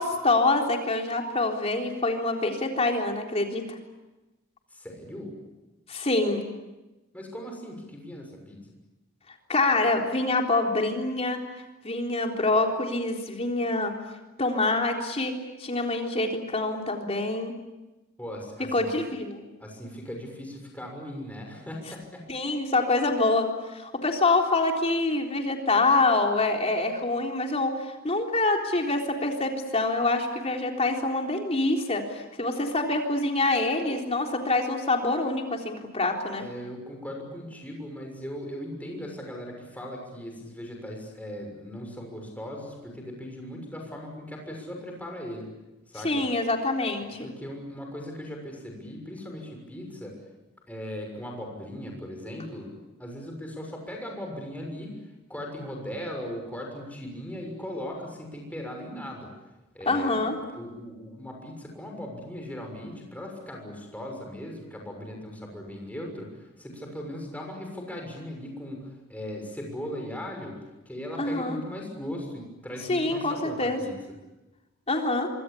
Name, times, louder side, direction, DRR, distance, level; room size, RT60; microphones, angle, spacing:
voice 1, 0.0-3.8 5.9-6.4 9.5-11.4 11.8-13.9 14.4-17.5 18.7-19.4 22.3-36.5 46.0-47.3 59.9-60.4 71.2-71.6 72.9-73.8 74.9-75.3, left 2 dB, 30° left, 2 dB, 3.8 m, -26 dB
voice 2, 4.7-5.3 7.1-8.6 18.2-18.9 19.6-22.2 36.4-45.5 45.9-46.2 47.2-50.2 50.7-52.7 53.0-54.9 55.3-59.3 59.7-60.3 60.5-66.3 66.6-70.6 70.8-74.0, equal, 5° left, 1 dB, 6.5 m, -38 dB
25.5 x 25.5 x 8.6 m, 1.0 s
head